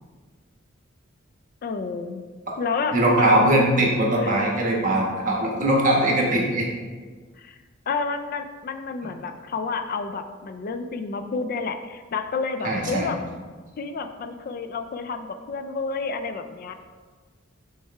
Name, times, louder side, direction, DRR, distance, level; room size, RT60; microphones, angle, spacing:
voice 1, 1.6-2.2 2.6-3.5 4.2-4.3 7.4-7.6 7.9-13.2 13.8-16.7, left 4 dB, 45° left, 8 dB, 0.3 m, -30 dB
voice 2, 2.9-6.7 12.6-13.1, right 1 dB, 40° right, -1 dB, 1.2 m, -21 dB
6.3 x 3.3 x 4.5 m, 1.4 s
head